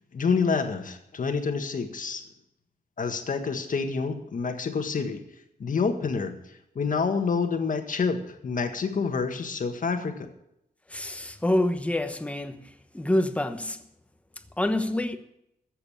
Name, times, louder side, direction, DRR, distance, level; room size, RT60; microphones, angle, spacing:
voice 1, 0.1-2.2 3.0-5.2 5.6-6.4 6.7-10.3, left 5 dB, 60° left, 1.7 m, -27 dB
voice 2, 10.9-13.8 14.6-15.2, left 1 dB, 10° left, 1.1 m, -27 dB
14.0 x 7.8 x 8.7 m
wide cardioid pair, 115°, 16 cm